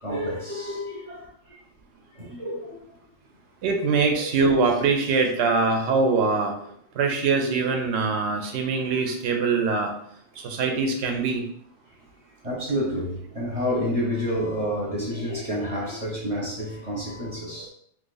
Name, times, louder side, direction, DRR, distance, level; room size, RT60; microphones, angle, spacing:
voice 1, 0.0-1.6 2.1-2.8 3.9-4.0 12.4-17.7, equal, 35° right, 0.8 m, -29 dB
voice 2, 3.6-6.5 7.0-9.9 10.4-11.4, right 4 dB, 80° right, 0.8 m, -23 dB
2.7 x 2.4 x 3.9 m
omnidirectional pair, 1.1 m